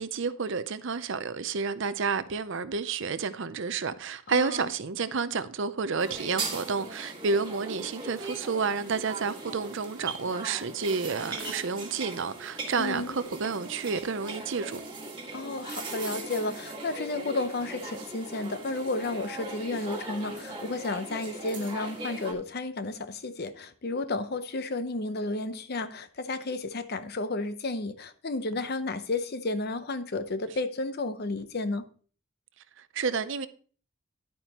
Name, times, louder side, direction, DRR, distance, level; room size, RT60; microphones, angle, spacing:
voice 1, 0.0-14.8 32.8-33.5, right 5 dB, 55° right, 0.6 m, -30 dB
voice 2, 4.3-4.7 12.8-13.2 15.3-31.9, left 2 dB, 45° left, 0.7 m, -32 dB
sound 1, 6.0-22.3, right 2 dB, 20° right, 1.8 m, -39 dB
11.0 x 8.9 x 2.9 m
head